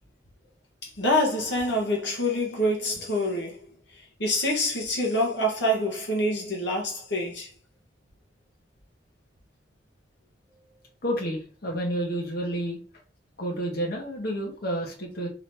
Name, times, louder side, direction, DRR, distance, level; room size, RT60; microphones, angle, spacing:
voice 1, 1.0-3.6 4.0-7.5, left 1 dB, 75° left, 1.2 m, -26 dB
voice 2, 11.0-12.8 13.4-15.3, equal, 60° left, 1.3 m, -30 dB
4.8 x 2.8 x 3.4 m
head